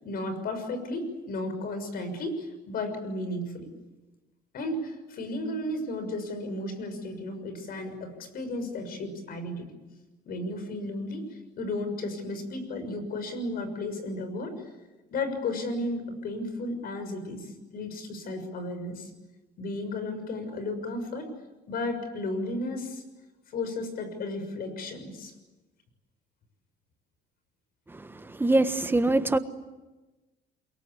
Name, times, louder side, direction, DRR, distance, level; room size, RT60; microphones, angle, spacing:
voice 1, 0.0-3.7 4.5-9.7 10.2-11.2 11.6-14.6 15.1-19.1 19.6-21.3 21.7-23.0 23.5-25.3, left 2 dB, 60° left, 9 dB, 6.5 m, -34 dB
voice 2, 27.9-29.4, right 2 dB, 10° right, 10 dB, 1.3 m, -24 dB
28.5 x 23.0 x 8.5 m, 1.1 s
cardioid pair, 110°, 17 cm